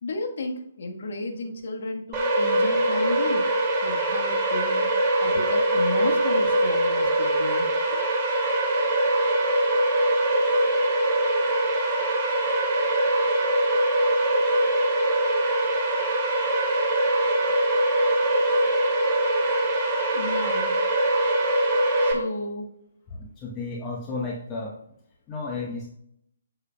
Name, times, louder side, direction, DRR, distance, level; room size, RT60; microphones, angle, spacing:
voice 1, 0.0-3.4 3.8-4.8 5.2-8.0 20.1-20.7 22.0-22.7, left 2 dB, 60° left, 2 dB, 1.4 m, -33 dB
sound 1, 2.1-22.1, right 1 dB, 20° right, 2.4 m, -23 dB
voice 2, 23.1-24.8 25.3-25.9, left 3 dB, 20° left, -2 dB, 1.0 m, -33 dB
9.5 x 6.6 x 2.3 m, 0.75 s
figure-of-eight pair, 140°, 0 cm